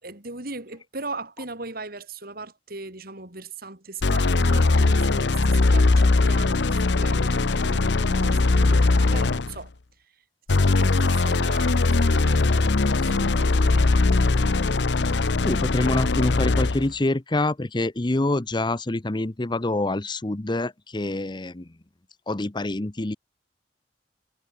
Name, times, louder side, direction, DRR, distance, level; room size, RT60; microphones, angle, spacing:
voice 1, 0.0-9.7 10.5-14.8, right 3 dB, 55° right, 4.6 m, -39 dB
sound 1, 4.0-9.6 10.5-16.9, left 3 dB, 70° left, 0.8 m, -20 dB
voice 2, 15.4-21.7 22.3-23.2, left 2 dB, 25° left, 0.8 m, -26 dB
head